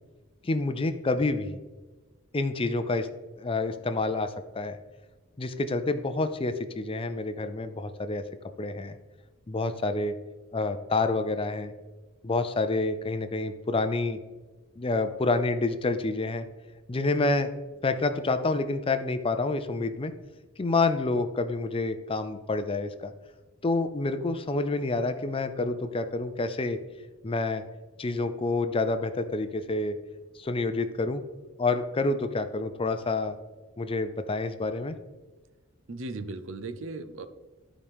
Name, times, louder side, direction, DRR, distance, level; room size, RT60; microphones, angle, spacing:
voice 1, 0.4-1.6 2.3-3.1 3.4-4.8 5.4-8.2 8.6-9.0 9.5-10.1 10.5-11.7 12.2-14.2 14.8-16.5 16.9-17.5 17.8-20.1 20.6-23.1 23.6-26.8 27.2-27.6 28.0-30.0 30.4-31.2 31.6-33.4 33.8-35.0, left 3 dB, 25° left, 9 dB, 0.5 m, -28 dB
voice 2, 35.9-37.3, right 3 dB, 65° right, 11 dB, 0.6 m, -37 dB
13.5 x 4.9 x 3.6 m, 1.2 s
head